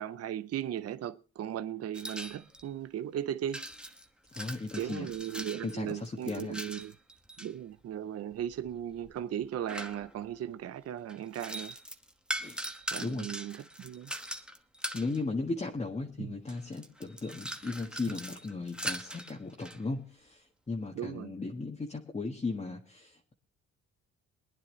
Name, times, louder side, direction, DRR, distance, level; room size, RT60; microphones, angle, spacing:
voice 1, 0.0-3.6 4.8-6.9 7.4-11.7 12.9-14.1 16.2-16.3 21.0-21.3, right 10 dB, 55° right, 0.7 m, -37 dB
sound 1, 1.9-2.7 3.5-7.5 8.4-10.4 11.1-15.2 16.1-16.2 16.5-19.8, right 1 dB, 5° right, 1.1 m, -41 dB
voice 2, 4.3-5.1 5.6-6.6 12.4-12.6 13.0-13.4 14.9-23.3, left 3 dB, 20° left, 1.5 m, -36 dB
22.5 x 9.9 x 3.1 m
cardioid pair, 90°, 30 cm